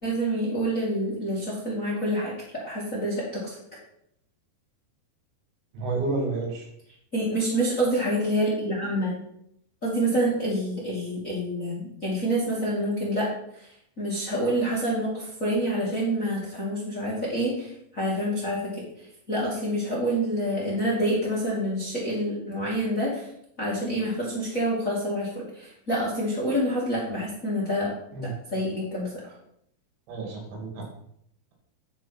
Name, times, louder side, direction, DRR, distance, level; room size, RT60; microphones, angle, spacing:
voice 1, 0.0-3.6 7.1-9.1 9.8-13.3 14.0-18.8 19.3-23.3 23.6-27.9 28.2-29.3, equal, 30° left, -6 dB, 1.5 m, -27 dB
voice 2, 5.7-6.7 28.1-28.3 30.1-30.9, right 3 dB, 80° right, 0 dB, 4.8 m, -30 dB
9.5 x 5.0 x 5.9 m, 0.72 s
omnidirectional pair, 5.2 m